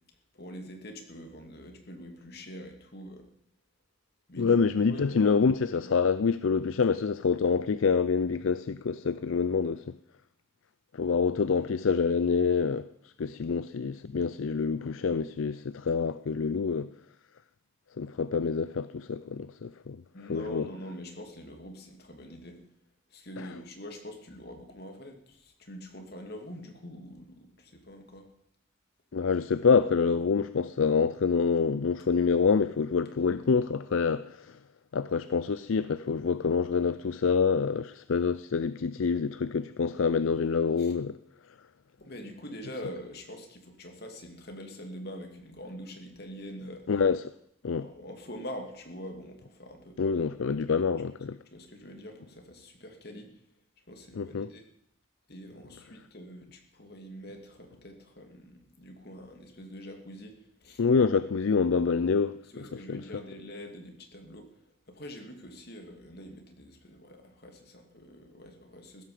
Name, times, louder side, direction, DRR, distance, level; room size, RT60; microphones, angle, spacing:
voice 1, 0.3-3.3 4.3-5.4 5.7-5.9 20.1-22.6 23.1-28.3 40.8-40.9 42.0-46.9 47.7-50.7 51.5-53.3 53.9-54.6 55.3-60.8 62.4-69.0, equal, 50° left, 2.5 m, -44 dB
voice 2, 4.4-9.8 10.9-12.9 13.2-16.9 18.0-20.0 20.3-20.6 23.4-23.5 29.1-34.5 34.9-41.1 46.9-47.2 47.6-47.9 50.0-51.4 54.2-54.5 60.8-62.4 62.9-63.0, left 5 dB, 70° left, 0.5 m, -26 dB
15.5 x 13.5 x 5.0 m
head